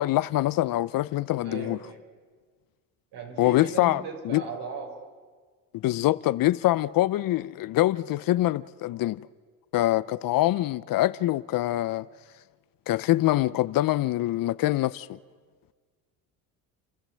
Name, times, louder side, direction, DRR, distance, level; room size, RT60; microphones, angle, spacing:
voice 1, 0.0-1.8 3.4-4.4 5.7-9.2 9.7-12.1 12.9-15.2, left 15 dB, 50° left, 0.6 m, -24 dB
voice 2, 1.4-2.0 3.1-5.1, right 3 dB, 65° right, 4.8 m, -37 dB
30.0 x 12.5 x 7.6 m
supercardioid pair, 85°, 43 cm